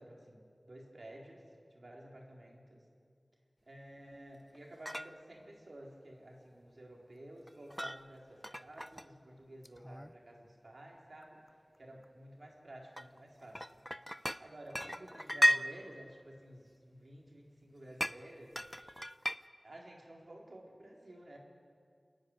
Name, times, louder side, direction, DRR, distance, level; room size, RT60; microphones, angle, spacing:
voice 1, 0.0-1.4 1.7-2.8 3.6-11.4 11.8-13.8 14.4-18.6 19.6-21.4, right 1 dB, 75° right, -1 dB, 4.0 m, -52 dB
sound 1, 4.5-4.6 4.8-5.2 7.5-8.0 8.4-9.0 9.6-10.1 11.2-11.5 12.0-12.1 13.0-14.4 14.7-15.6 18.0-18.2 18.5-19.4, equal, 5° left, 0.5 m, -34 dB
29.0 x 10.0 x 9.7 m, 2.2 s
wide cardioid pair, 55°, 0 cm